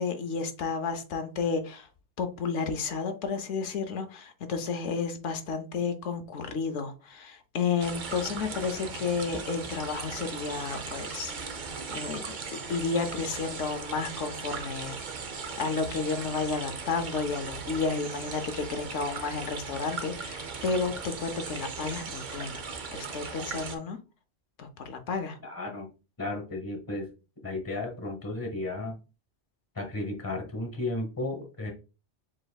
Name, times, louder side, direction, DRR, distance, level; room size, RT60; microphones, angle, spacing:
voice 1, 0.0-1.9 2.2-11.6 11.9-12.4 12.7-15.0 15.6-22.6 22.9-24.0 24.6-25.4, left 5 dB, 80° left, 1.0 m, -32 dB
sound 1, 7.8-23.8, right 5 dB, 50° right, 0.7 m, -38 dB
voice 2, 25.4-25.9 26.2-27.1 27.4-29.0 29.7-31.7, left 2 dB, 20° left, 1.1 m, -34 dB
7.4 x 2.9 x 2.3 m
omnidirectional pair, 1.2 m